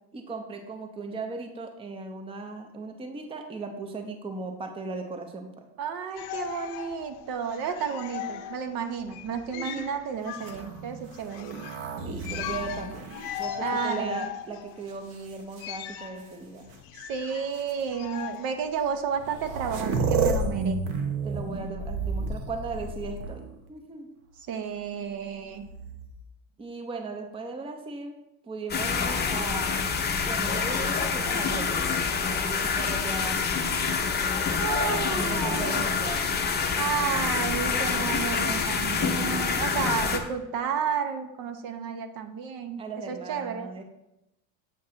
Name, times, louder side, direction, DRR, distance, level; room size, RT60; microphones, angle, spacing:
voice 1, 0.1-5.7 9.5-9.9 12.0-13.1 13.4-16.7 21.2-24.1 26.6-28.2 28.4-29.7 30.2-33.5 34.2-34.8 35.3-36.3 42.8-43.8, right 3 dB, 15° right, 4 dB, 0.6 m, -37 dB
voice 2, 5.8-11.5 13.6-14.2 16.9-20.8 24.5-25.7 34.5-35.8 36.8-42.8 43.1-43.7, right 7 dB, 55° right, 7 dB, 0.8 m, -32 dB
sound 1, 6.1-19.1, left 11 dB, 70° left, 0.7 m, -39 dB
sound 2, 10.3-14.2 14.9-15.6 16.7-16.8 17.5-17.7 18.9-19.0 19.1-23.6 25.5-26.2, right 4 dB, 80° right, 1.0 m, -32 dB
sound 3, 28.7-40.2, left 5 dB, 25° left, 0.7 m, -27 dB
7.5 x 2.5 x 5.7 m, 0.87 s
supercardioid pair, 110°, 42 cm